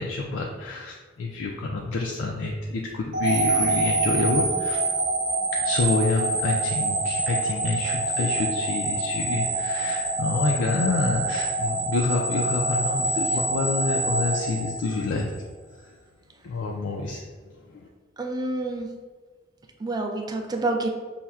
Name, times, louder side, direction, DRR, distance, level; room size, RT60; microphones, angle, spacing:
voice 1, 0.0-4.8 5.6-15.3 16.4-17.2 17.7-17.9, left 3 dB, 70° left, 0 dB, 0.3 m, -28 dB
sound 1, 3.1-15.3, right 2 dB, 65° right, 0.8 m, -26 dB
voice 2, 18.2-18.9 19.8-20.9, right 2 dB, 20° right, 3 dB, 0.3 m, -28 dB
5.5 x 2.1 x 2.3 m, 1.5 s
head